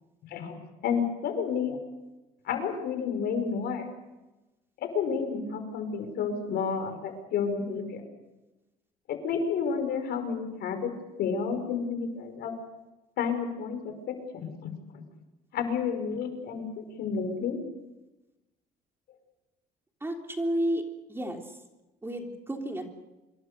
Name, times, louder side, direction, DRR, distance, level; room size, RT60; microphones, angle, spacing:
voice 1, 0.3-1.8 2.4-3.9 4.8-8.0 9.1-10.9 11.2-12.5 13.2-13.9 14.3-15.0 15.5-16.7 17.0-17.6, left 6 dB, 70° left, 6 dB, 5.3 m, -30 dB
voice 2, 20.0-20.8 21.1-21.4 22.0-22.9, right 1 dB, 15° right, 3 dB, 3.5 m, -31 dB
26.5 x 22.0 x 6.8 m, 1.0 s
cardioid pair, 110°, 17 cm